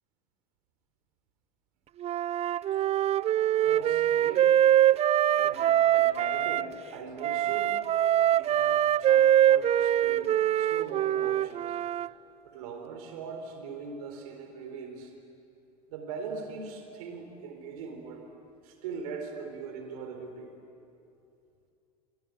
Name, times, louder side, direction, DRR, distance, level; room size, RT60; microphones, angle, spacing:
Wind instrument woodwind instrument, 2.0-6.6 7.2-12.1, right 11 dB, 30° right, 0.5 m, -24 dB
voice 1, 3.5-4.6 5.3-7.8 8.3-11.8 12.4-15.1 15.9-18.3 18.6-20.5, right 5 dB, 65° right, 5 dB, 3.8 m, -41 dB
25.0 x 24.0 x 9.3 m, 2.7 s
figure-of-eight pair, 70°, 21 cm